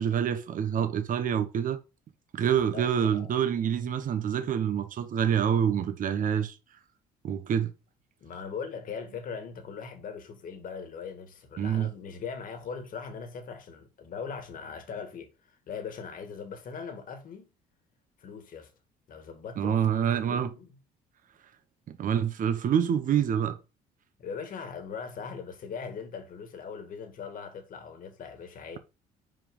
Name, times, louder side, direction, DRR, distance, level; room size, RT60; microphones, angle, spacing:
voice 1, 0.0-1.8 2.3-6.6 7.2-7.7 11.6-11.9 19.6-20.5 21.9-23.6, right 8 dB, 50° right, 1.1 m, -26 dB
voice 2, 2.5-3.3 8.2-17.5 18.2-18.7 19.1-19.8 20.1-20.7 24.2-28.8, left 6 dB, 55° left, 2.1 m, -40 dB
5.6 x 5.1 x 5.4 m
cardioid pair, 110°, 17 cm